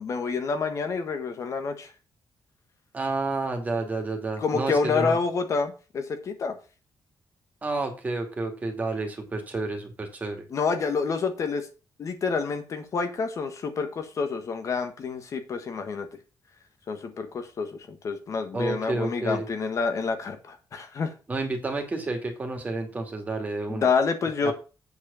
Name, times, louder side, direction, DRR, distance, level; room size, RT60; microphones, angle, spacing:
voice 1, 0.0-1.9 4.4-6.6 10.5-11.7 12.0-16.1 16.9-21.1 23.7-24.5, left 5 dB, 50° left, 7 dB, 1.5 m, -28 dB
voice 2, 2.9-5.2 7.6-10.4 18.5-19.5 21.3-23.9 24.4-24.5, right 3 dB, 20° right, 3 dB, 2.5 m, -30 dB
8.3 x 4.8 x 7.0 m, 0.32 s
wide cardioid pair, 145°, 7 cm